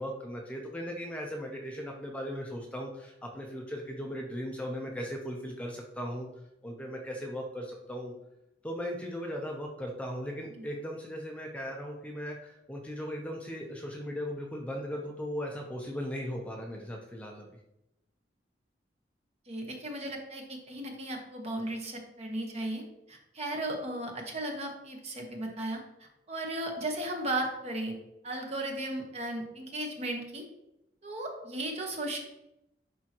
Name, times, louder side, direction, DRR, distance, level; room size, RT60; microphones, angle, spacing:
voice 1, 0.0-6.3 6.6-8.1 8.6-17.5, equal, 5° left, 0 dB, 0.7 m, -38 dB
voice 2, 19.5-22.8 23.1-27.9 28.2-30.4 31.0-32.2, right 1 dB, 35° right, 2 dB, 1.1 m, -36 dB
10.5 x 3.7 x 3.0 m, 0.86 s
head